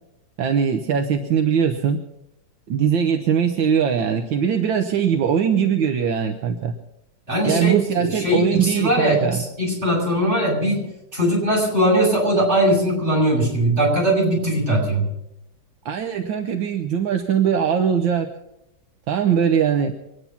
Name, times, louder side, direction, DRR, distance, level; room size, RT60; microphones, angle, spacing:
voice 1, 0.4-2.0 2.7-6.7 7.4-9.4 15.8-18.3 19.1-19.9, right 7 dB, 80° right, 5 dB, 1.7 m, -21 dB
voice 2, 7.3-15.1, right 1 dB, 35° right, -3 dB, 7.1 m, -20 dB
24.5 x 9.7 x 5.8 m, 0.85 s
omnidirectional pair, 2.1 m